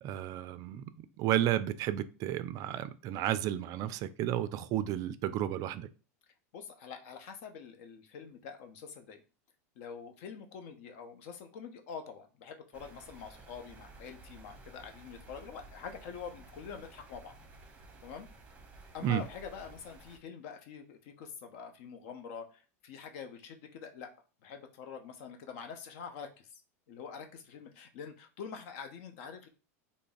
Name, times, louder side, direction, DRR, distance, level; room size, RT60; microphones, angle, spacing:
voice 1, 0.0-5.9 19.0-19.2, right 12 dB, 45° right, 0.3 m, -32 dB
voice 2, 6.5-9.2 9.8-17.4 18.0-18.3 18.9-24.1 24.4-26.6 26.9-29.5, left 6 dB, 65° left, 0.7 m, -45 dB
sound 1, 12.7-20.2, right 3 dB, 15° right, 0.8 m, -54 dB
3.3 x 2.0 x 3.9 m
hypercardioid pair, 110°, 8 cm